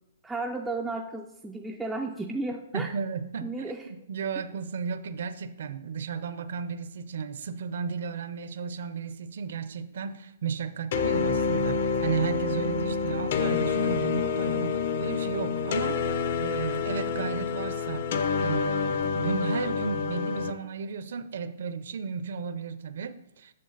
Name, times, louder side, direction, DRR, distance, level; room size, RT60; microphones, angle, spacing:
voice 1, 0.2-2.9 3.4-3.9, right 2 dB, 5° right, 1 dB, 0.3 m, -33 dB
voice 2, 2.7-3.5 3.9-16.0 16.4-18.0 18.4-23.5, right 6 dB, 60° right, 11 dB, 0.6 m, -34 dB
sound 1, 10.9-20.5, left 5 dB, 45° left, 0.6 m, -28 dB
7.6 x 6.4 x 4.0 m, 0.90 s
hypercardioid pair, 170°, 0 cm